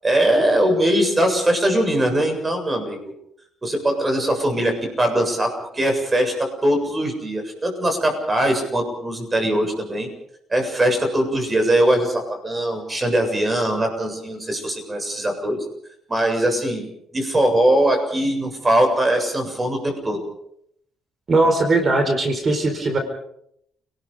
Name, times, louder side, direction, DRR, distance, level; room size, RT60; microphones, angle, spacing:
voice 1, 0.0-3.0 3.6-10.1 10.5-15.6 16.1-20.2, right 1 dB, 25° right, 4 dB, 7.5 m, -21 dB
voice 2, 21.3-23.0, right 2 dB, 40° right, 6 dB, 4.6 m, -19 dB
29.5 x 19.5 x 5.2 m, 0.73 s
cardioid pair, 90°, 0 cm